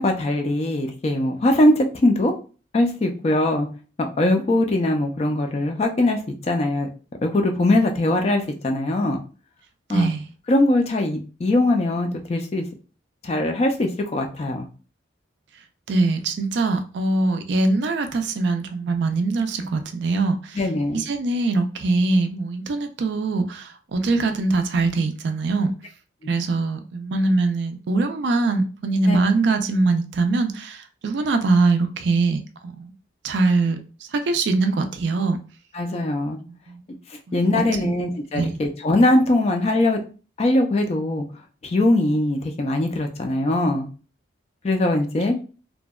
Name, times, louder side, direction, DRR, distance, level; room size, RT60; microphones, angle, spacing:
voice 1, 0.0-2.3 2.7-3.7 4.0-6.9 7.2-9.2 9.9-10.1 10.5-12.6 13.2-14.7 20.5-21.0 29.1-29.2 35.7-36.4 37.3-40.0 40.4-41.2 41.6-43.9 44.6-45.4, left 1 dB, 30° left, 4 dB, 0.3 m, -21 dB
voice 2, 9.9-10.3 15.9-20.6 20.9-25.7 26.3-32.9 33.2-33.8 34.1-35.4 36.5-36.8 37.3-37.5 37.8-37.9 38.3-38.6, right 3 dB, 60° right, 8 dB, 0.3 m, -22 dB
2.7 x 2.1 x 2.2 m, 0.36 s
head